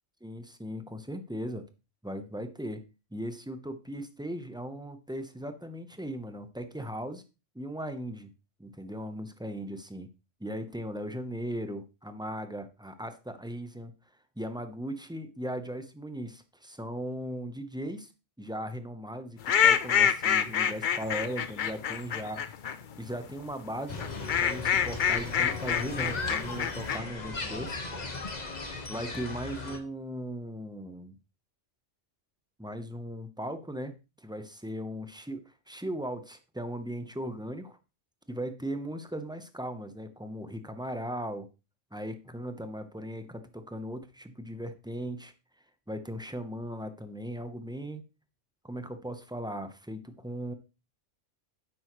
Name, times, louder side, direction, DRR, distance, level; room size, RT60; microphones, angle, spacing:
voice 1, 0.2-1.6 2.0-2.8 3.1-7.2 7.5-8.3 8.6-10.1 10.4-13.9 14.4-18.1 18.4-22.4 23.0-27.8 28.9-31.2 32.6-34.0 34.2-37.8 38.3-41.5 41.9-45.3 45.9-48.0 48.6-50.5, equal, 5° right, 8 dB, 0.7 m, -38 dB
sound 1, 19.4-22.8 24.0-27.0, left 8 dB, 50° left, 0.7 m, -26 dB
sound 2, 23.9-29.8, left 3 dB, 35° left, 1.3 m, -37 dB
9.8 x 7.7 x 3.1 m, 0.29 s
omnidirectional pair, 1.3 m